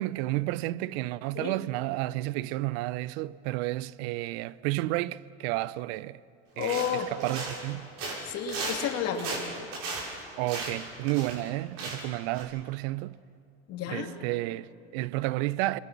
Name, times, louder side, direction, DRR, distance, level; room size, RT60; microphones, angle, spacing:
voice 1, 0.0-6.2 6.6-7.9 10.4-13.2 13.9-15.8, right 18 dB, 75° right, 0.6 m, -31 dB
voice 2, 6.6-7.1 8.2-9.3 13.7-14.1, left 8 dB, 50° left, 2.6 m, -31 dB
sound 1, 6.6-7.7 8.0-11.5 11.8-12.1 12.3-12.4, right 3 dB, 55° right, 6.7 m, -36 dB
28.0 x 22.0 x 6.0 m
supercardioid pair, 120°, 32 cm